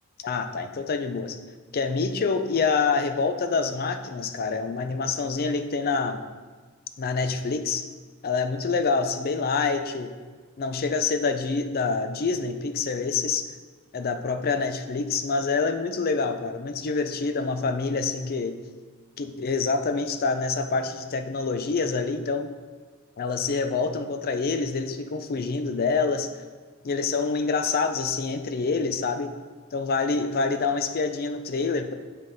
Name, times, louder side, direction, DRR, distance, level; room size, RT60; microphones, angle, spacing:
voice 1, 0.2-1.4 1.7-6.2 7.0-7.8 8.2-10.1 10.6-13.5 13.9-18.6 19.2-22.5 23.2-26.3 26.8-29.3 29.7-31.9, left 4 dB, 45° left, 8 dB, 0.5 m, -26 dB
9.7 x 3.8 x 3.7 m, 1.4 s
head